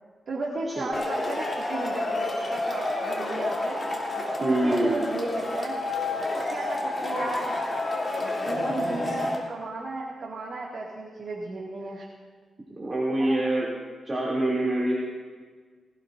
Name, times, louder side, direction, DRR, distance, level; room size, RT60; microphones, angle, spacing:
voice 1, 0.3-3.8 4.4-5.8 6.3-7.6 8.2-12.1 13.2-13.4, right 2 dB, 50° right, -5 dB, 2.3 m, -34 dB
Male speech man speaking / Shout / Clapping, 0.9-9.4, left 2 dB, 30° left, 3.1 m, -29 dB
voice 2, 4.4-5.1 12.8-13.7 14.0-14.9, right 1 dB, 25° right, -5 dB, 2.9 m, -25 dB
20.0 x 18.5 x 2.7 m, 1.5 s
wide cardioid pair, 125°, 0 cm